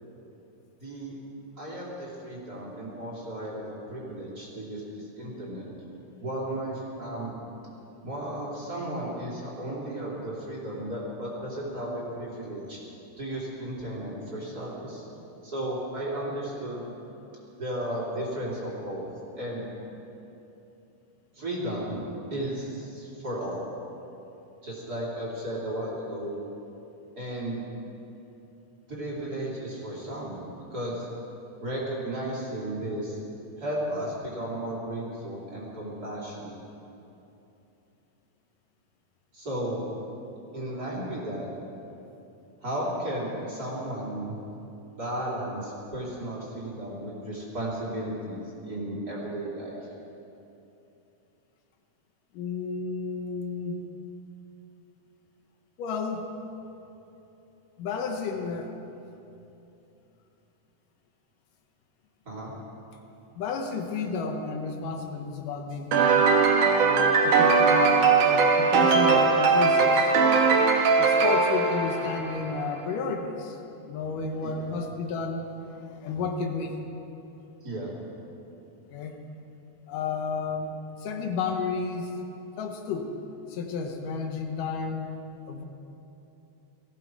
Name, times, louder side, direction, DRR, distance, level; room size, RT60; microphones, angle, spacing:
voice 1, 0.8-1.1 1.6-5.7 6.2-7.3 8.0-12.8 13.2-15.0 15.4-16.9 17.6-19.1 19.3-19.7 21.3-22.0 22.3-23.7 24.6-26.4 27.2-27.6 28.9-30.4 30.7-31.1 31.6-33.2 33.6-36.6 39.3-39.8 40.5-41.5 42.6-44.3 45.0-49.8 62.2-62.5 74.4-74.5 77.6-77.9, right 1 dB, 30° right, -6 dB, 3.3 m, -34 dB
voice 2, 52.3-53.8 55.8-56.3 57.8-58.7 63.4-66.2 66.8-70.1 71.0-73.6 73.8-75.4 75.8-76.7 78.9-79.2 79.9-82.2 82.6-83.1 83.5-85.1 85.5-85.6, left 4 dB, 80° left, 4 dB, 2.7 m, -32 dB
sound 1, 65.9-72.6, right 4 dB, 75° right, 2.7 m, -20 dB
19.5 x 15.0 x 4.7 m, 2.9 s
omnidirectional pair, 3.7 m